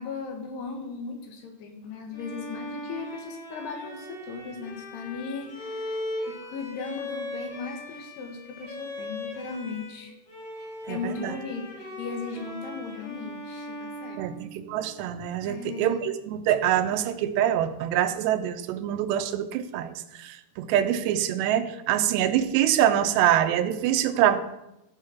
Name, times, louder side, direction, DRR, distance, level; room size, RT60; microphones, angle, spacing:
voice 1, 0.0-10.1 10.6-14.2 15.4-16.0, left 4 dB, 75° left, 3 dB, 3.6 m, -37 dB
Bowed string instrument, 2.1-10.0 10.3-15.1, left 1 dB, 50° left, 4.5 m, -39 dB
voice 2, 10.9-11.3 14.2-24.4, right 11 dB, 90° right, 10 dB, 2.9 m, -25 dB
13.5 x 6.5 x 5.8 m, 0.91 s
omnidirectional pair, 4.8 m